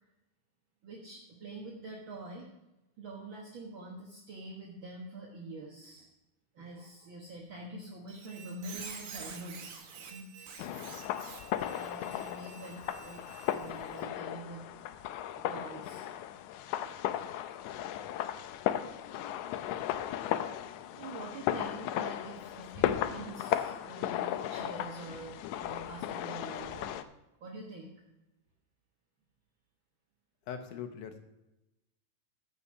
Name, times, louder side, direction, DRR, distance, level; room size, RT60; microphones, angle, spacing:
voice 1, 0.8-2.5 3.0-6.1 6.5-10.6 11.7-13.3 13.5-14.6 15.4-16.1 16.8-16.9 20.9-27.0 27.4-27.9, right 2 dB, 55° right, -2 dB, 1.4 m, -46 dB
Squeak, 8.1-14.0, right 6 dB, 75° right, 3.1 m, -48 dB
sound 1, 10.6-27.0, left 11 dB, 90° left, 1.6 m, -36 dB
voice 2, 30.5-31.2, left 8 dB, 70° left, 7 dB, 2.3 m, -41 dB
14.0 x 5.6 x 6.3 m, 0.95 s
omnidirectional pair, 4.0 m